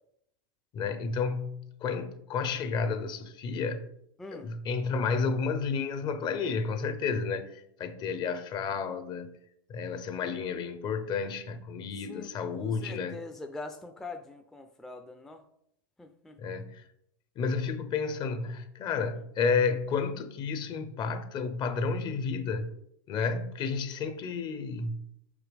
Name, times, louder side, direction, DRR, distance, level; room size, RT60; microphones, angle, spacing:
voice 1, 0.7-3.9 4.3-9.4 9.7-13.2 16.4-16.8 17.4-22.7 23.1-25.1, left 5 dB, 40° left, 0.7 m, -31 dB
voice 2, 4.2-4.5 12.0-15.4 16.0-16.4, left 2 dB, 5° left, 0.4 m, -43 dB
5.8 x 4.9 x 3.3 m
supercardioid pair, 120°, 12 cm